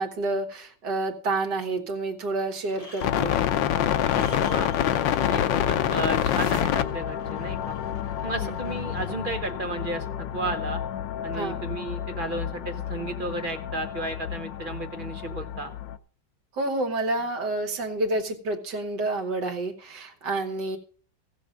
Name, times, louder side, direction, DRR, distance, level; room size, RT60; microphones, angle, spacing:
voice 1, 0.0-3.4 8.4-8.6 11.3-11.6 16.5-20.8, right 2 dB, 70° right, 5 dB, 2.0 m, -29 dB
sound 1, 2.6-9.1, left 3 dB, 25° left, 1.0 m, -46 dB
sound 2, 3.0-16.0, left 10 dB, 90° left, 1.4 m, -28 dB
voice 2, 4.2-4.7 5.3-7.8 8.2-10.8 11.2-15.7, right 2 dB, 30° right, 5 dB, 1.2 m, -33 dB
15.5 x 7.0 x 5.2 m, 0.42 s
omnidirectional pair, 1.9 m